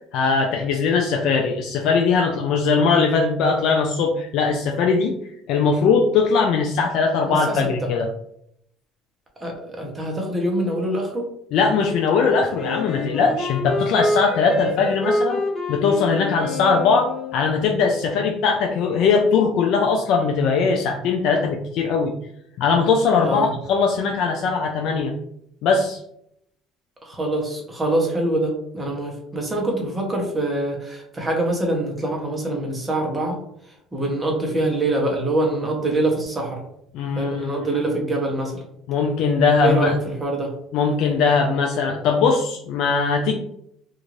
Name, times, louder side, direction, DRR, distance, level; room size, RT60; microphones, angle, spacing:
voice 1, 0.1-5.1 5.5-8.1 11.5-15.4 15.7-22.1 22.6-25.1 25.6-26.0 36.9-37.8 38.9-40.0 40.7-43.3, left 5 dB, 70° left, 2 dB, 0.3 m, -20 dB
voice 2, 7.3-7.9 9.4-11.3 23.2-23.5 27.0-33.4 33.9-36.6 37.2-38.6 39.6-40.5, right 1 dB, 15° right, 0 dB, 0.9 m, -24 dB
Wind instrument woodwind instrument, 12.6-17.6, left 2 dB, 25° left, 1.1 m, -27 dB
2.6 x 2.4 x 3.1 m, 0.74 s
cardioid pair, 115°, 0 cm